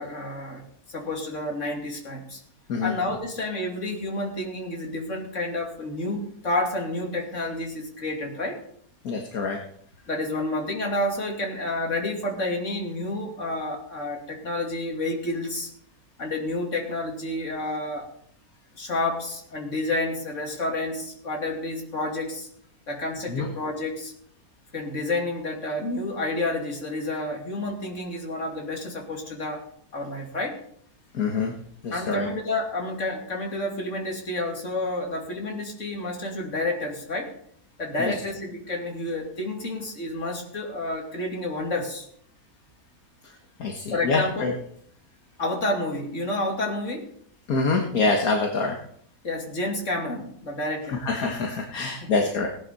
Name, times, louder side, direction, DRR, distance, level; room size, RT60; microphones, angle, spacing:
voice 1, 0.0-2.4 2.8-8.6 10.1-15.7 16.2-18.1 18.8-22.5 22.9-24.1 24.7-29.6 29.9-30.6 31.9-37.3 37.8-42.1 43.9-44.5 45.4-47.1 49.2-51.0 52.0-52.1, left 2 dB, 50° left, 1 dB, 3.0 m, -30 dB
voice 2, 9.0-9.6 23.3-23.5 31.1-31.5 31.8-32.3 38.0-38.2 43.2-43.3 43.6-44.5 47.5-48.8 50.9-52.5, left 4 dB, 65° left, 2 dB, 1.9 m, -25 dB
17.5 x 11.0 x 4.2 m, 0.66 s
omnidirectional pair, 1.7 m